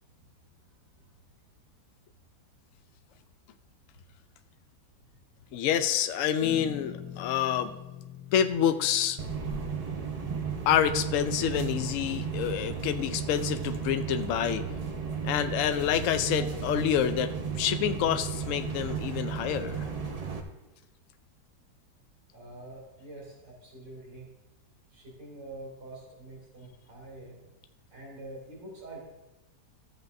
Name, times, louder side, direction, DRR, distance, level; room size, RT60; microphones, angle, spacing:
voice 1, 5.5-7.7 8.3-9.2 10.7-14.6 15.2-19.9, left 9 dB, 70° left, 9 dB, 0.8 m, -27 dB
sound 1, 6.4-11.4, left 8 dB, 45° left, 1.8 m, -45 dB
sound 2, 9.2-20.4, right 6 dB, 70° right, 0.3 m, -34 dB
voice 2, 22.3-24.3 24.9-27.4 27.9-29.0, right 2 dB, 90° right, -4 dB, 3.7 m, -45 dB
14.0 x 7.9 x 2.6 m, 1.0 s
omnidirectional pair, 1.8 m